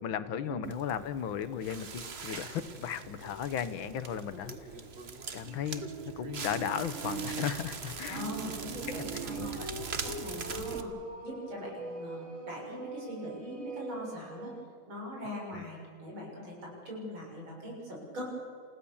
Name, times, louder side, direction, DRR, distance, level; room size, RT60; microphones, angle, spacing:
voice 1, 0.0-4.6 5.3-5.8 6.2-8.3 9.3-9.7 15.5-15.7, left 9 dB, 80° left, 13 dB, 1.8 m, -35 dB
Crackle, 0.6-10.8, right 6 dB, 35° right, 1.3 m, -41 dB
sound 1, 3.2-3.6 4.0-4.1 4.5-4.6 6.7-14.7, right 2 dB, 20° right, 1.3 m, -44 dB
voice 2, 8.1-9.6 10.0-10.9 11.2-14.5 14.9-18.2, left 1 dB, 90° right, -2 dB, 7.5 m, -41 dB
29.0 x 16.0 x 7.2 m, 2.3 s
omnidirectional pair, 2.2 m